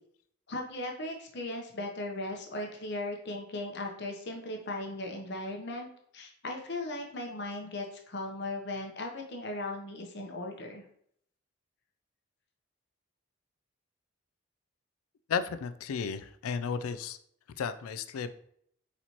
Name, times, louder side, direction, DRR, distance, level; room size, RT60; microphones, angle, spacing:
voice 1, 0.5-10.8, left 2 dB, 50° left, 2 dB, 0.8 m, -37 dB
voice 2, 15.3-17.2 17.6-18.3, left 6 dB, 85° left, 11 dB, 0.4 m, -33 dB
4.3 x 4.2 x 2.9 m, 0.67 s
head